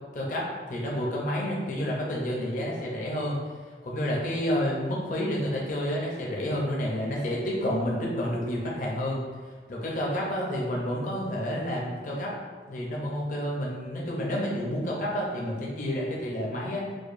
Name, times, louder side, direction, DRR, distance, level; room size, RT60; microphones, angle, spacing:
voice 1, 0.1-3.4 3.8-9.2 9.7-12.3 12.7-16.9, equal, 45° left, -3 dB, 0.5 m, -29 dB
4.9 x 2.1 x 2.5 m, 1.5 s
head